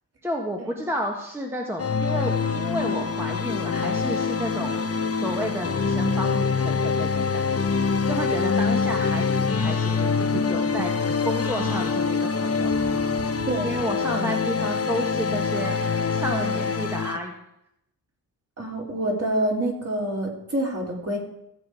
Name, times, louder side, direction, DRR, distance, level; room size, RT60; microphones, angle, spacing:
voice 1, 0.2-4.8 5.1-7.4 7.8-12.7 13.6-17.3, equal, 5° right, 0 dB, 1.5 m, -31 dB
sound 1, 1.8-17.2, left 5 dB, 35° left, 1.0 m, -25 dB
sound 2, 9.6-11.9 12.6-14.6 14.9-15.0 15.4-15.5, right 7 dB, 80° right, 1.3 m, -41 dB
voice 2, 13.4-14.3 18.6-21.2, right 1 dB, 35° right, -2 dB, 3.9 m, -27 dB
16.5 x 7.5 x 4.9 m, 0.81 s
cardioid pair, 85°, 40 cm